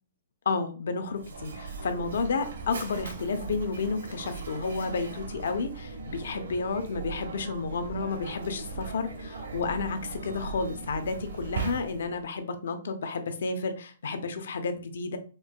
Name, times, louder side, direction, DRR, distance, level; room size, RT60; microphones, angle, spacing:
voice 1, 0.5-15.2, left 4 dB, 60° left, 8 dB, 0.6 m, -31 dB
Mechanisms, 1.1-12.3, right 4 dB, 80° right, 1.0 m, -39 dB
4.4 x 2.5 x 2.2 m, 0.37 s
hypercardioid pair, 180°, 0 cm